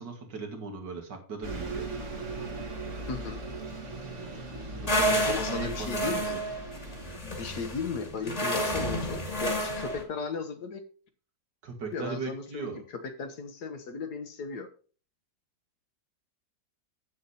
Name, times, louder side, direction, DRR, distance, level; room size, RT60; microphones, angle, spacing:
voice 1, 0.0-1.9 4.3-6.4 11.6-12.8, right 4 dB, 70° right, 3 dB, 2.3 m, -38 dB
Bus, 1.4-7.2, right 3 dB, 45° right, 1.6 m, -38 dB
voice 2, 3.1-3.4 5.2-6.4 7.2-10.8 11.9-14.7, left 5 dB, 65° left, 8 dB, 1.5 m, -36 dB
sound 1, 4.9-10.0, equal, 20° left, 1.6 m, -30 dB
8.2 x 7.1 x 4.1 m, 0.40 s
omnidirectional pair, 1.9 m